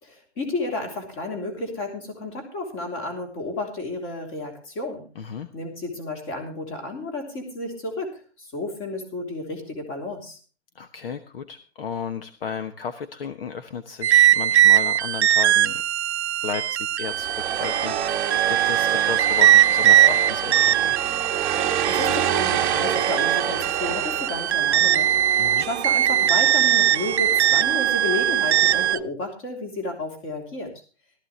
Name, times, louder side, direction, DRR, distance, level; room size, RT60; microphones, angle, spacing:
voice 1, 0.0-5.1 5.5-8.1 8.4-10.4 21.6-30.7, left 2 dB, 25° left, 3 dB, 3.1 m, -32 dB
voice 2, 5.1-5.5 10.7-15.8 16.4-21.0 25.4-25.7, left 6 dB, 55° left, 10 dB, 1.1 m, -34 dB
sound 1, 14.0-29.0, right 11 dB, 80° right, 0.6 m, -20 dB
sound 2, 17.0-28.9, right 9 dB, 15° right, 1.2 m, -28 dB
15.0 x 13.5 x 3.2 m, 0.37 s
hypercardioid pair, 170°, 33 cm